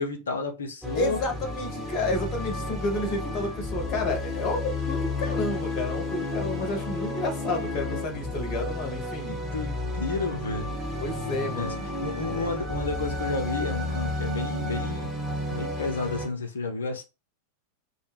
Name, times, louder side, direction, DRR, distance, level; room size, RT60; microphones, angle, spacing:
voice 1, 0.0-1.2 9.3-10.7 11.3-11.8 12.0-15.1 15.5-17.0, left 3 dB, 70° left, 0.6 m, -31 dB
sound 1, 0.8-16.3, left 2 dB, ahead, 1.0 m, -32 dB
voice 2, 0.9-9.4 11.0-11.9, left 2 dB, 35° left, 0.8 m, -30 dB
2.2 x 2.1 x 3.3 m
figure-of-eight pair, 90°, 0 cm